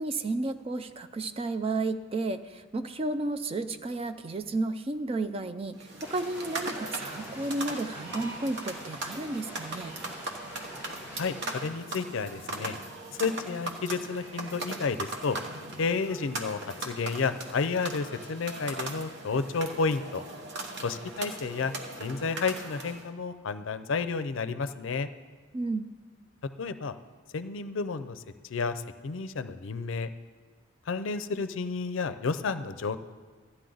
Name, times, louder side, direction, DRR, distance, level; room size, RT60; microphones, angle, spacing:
voice 1, 0.0-9.9 25.5-25.9, right 2 dB, 30° right, 9 dB, 0.4 m, -32 dB
sound 1, 5.7-23.1, right 2 dB, 60° right, 1.1 m, -39 dB
sound 2, 6.0-11.6, left 1 dB, 10° right, 3.2 m, -46 dB
voice 2, 11.1-12.8 13.2-15.4 15.8-20.2 20.8-21.7 22.0-25.1 26.6-27.0 27.3-28.2 28.5-30.1 30.9-33.0, left 4 dB, 70° left, 12 dB, 0.5 m, -31 dB
13.0 x 9.8 x 3.9 m, 1.5 s
head